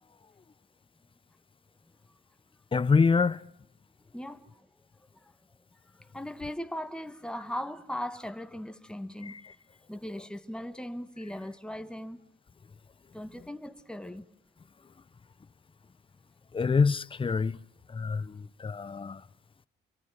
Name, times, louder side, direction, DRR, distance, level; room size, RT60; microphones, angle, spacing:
voice 1, 2.7-3.5 9.2-9.4 16.5-17.6 17.9-19.2, left 5 dB, 25° left, 0.8 m, -26 dB
voice 2, 4.1-4.7 5.2-5.3 6.0-9.4 9.9-12.2 13.1-14.2 18.0-18.3, left 1 dB, 5° left, 1.8 m, -39 dB
27.5 x 23.5 x 6.0 m
cardioid pair, 90°, 20 cm